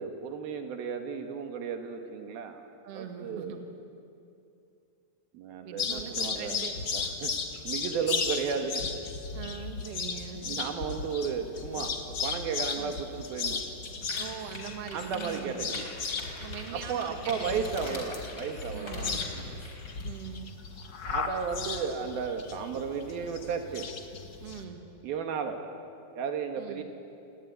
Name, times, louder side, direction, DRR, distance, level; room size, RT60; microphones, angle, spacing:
voice 1, 0.0-2.6 2.9-3.6 5.3-6.6 6.9-7.3 7.6-8.9 10.4-12.0 12.2-13.6 14.9-15.8 16.7-19.6 21.0-23.9 25.0-25.6 26.2-26.8, right 6 dB, 75° right, 5 dB, 3.4 m, -34 dB
voice 2, 2.8-3.6 5.6-6.8 7.2-7.3 9.3-10.7 12.8-12.9 14.2-15.7 16.4-18.0 18.7-19.3 20.0-20.5 24.4-24.8 26.6-26.8, right 8 dB, 45° right, 5 dB, 2.5 m, -42 dB
sound 1, 5.8-24.6, left 5 dB, 45° left, 1.4 m, -36 dB
sound 2, 14.0-20.0, left 2 dB, 30° left, 4.7 m, -43 dB
28.0 x 20.0 x 9.8 m, 2.6 s
omnidirectional pair, 4.4 m